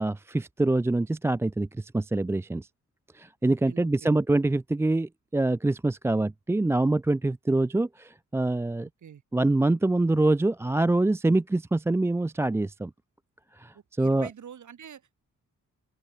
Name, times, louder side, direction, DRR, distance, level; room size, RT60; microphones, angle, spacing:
voice 1, 0.0-2.7 3.1-8.9 9.3-12.9 13.5-14.3, right 2 dB, 10° right, 0.3 m, -25 dB
voice 2, 3.4-4.1 9.0-9.2 13.7-15.1, right 8 dB, 65° right, 4.4 m, -46 dB
open air
wide cardioid pair, 145°, 32 cm